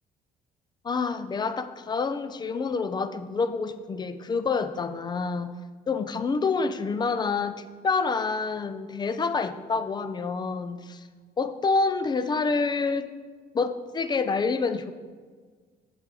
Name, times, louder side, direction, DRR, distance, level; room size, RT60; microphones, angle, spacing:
voice 1, 0.8-5.5 5.9-11.0 11.4-13.1 13.5-14.9, left 4 dB, 25° left, 12 dB, 0.4 m, -27 dB
6.8 x 5.9 x 4.8 m, 1.5 s
cardioid pair, 110°, 17 cm